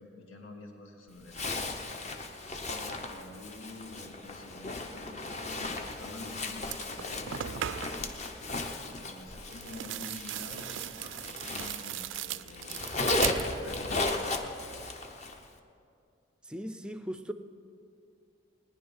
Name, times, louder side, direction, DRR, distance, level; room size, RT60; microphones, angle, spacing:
voice 1, 0.0-1.7 2.7-7.7 8.9-13.0 13.6-14.6, left 2 dB, 75° left, 2 dB, 1.8 m, -48 dB
Zipper (clothing), 1.3-12.2 12.5-15.4, left 2 dB, 35° left, 0.9 m, -36 dB
sound 1, 6.2-6.3 6.6-8.1 9.5-14.0 14.3-14.9, right 11 dB, 65° right, 0.4 m, -39 dB
voice 2, 16.5-17.3, equal, 5° right, 10 dB, 0.5 m, -38 dB
19.0 x 10.5 x 5.6 m, 2.5 s
head